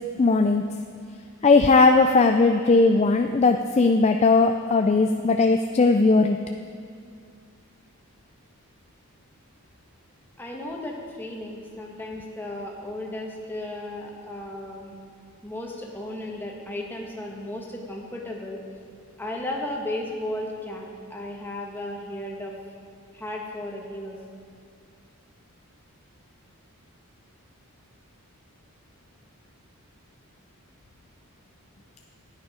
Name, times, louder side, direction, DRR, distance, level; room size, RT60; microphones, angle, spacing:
voice 1, 0.2-0.6 1.4-6.4, left 3 dB, 30° left, 6 dB, 0.3 m, -18 dB
voice 2, 10.4-15.0 15.4-18.6 19.2-22.5 23.1-24.2, left 1 dB, 10° left, -1 dB, 1.4 m, -34 dB
14.5 x 9.7 x 5.0 m, 2.2 s
head